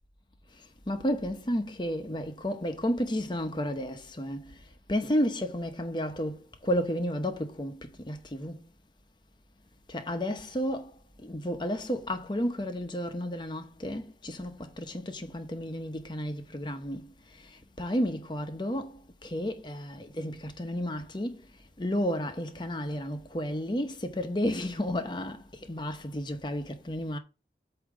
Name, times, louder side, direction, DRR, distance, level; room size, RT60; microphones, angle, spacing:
voice 1, 0.5-8.6 9.9-27.2, equal, 25° left, 0.8 m, -32 dB
8.4 x 2.8 x 6.2 m
head